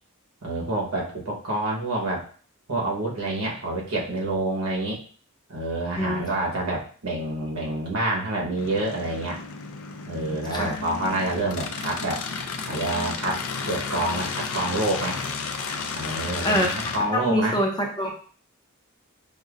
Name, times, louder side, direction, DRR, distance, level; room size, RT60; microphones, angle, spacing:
voice 1, 0.4-2.3 2.7-5.0 5.5-9.4 10.1-12.2 12.7-13.4 13.7-15.2 15.9-17.6, right 2 dB, 75° right, -3 dB, 1.1 m, -27 dB
sound 1, 8.6-17.0, left 5 dB, 70° left, 0.5 m, -32 dB
voice 2, 10.2-10.8 15.7-15.8 16.2-18.1, equal, 20° left, 1 dB, 0.6 m, -26 dB
5.2 x 2.1 x 2.5 m, 0.43 s
head